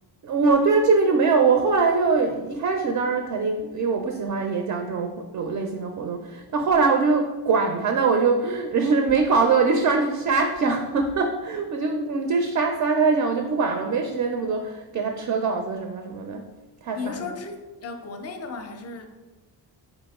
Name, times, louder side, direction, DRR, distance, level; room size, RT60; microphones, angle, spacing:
voice 1, 0.2-16.4 16.8-17.3, right 4 dB, 45° right, 4 dB, 0.4 m, -23 dB
voice 2, 16.9-19.1, left 5 dB, 35° left, 6 dB, 0.5 m, -35 dB
4.3 x 3.0 x 3.5 m, 1.1 s
wide cardioid pair, 145°, 43 cm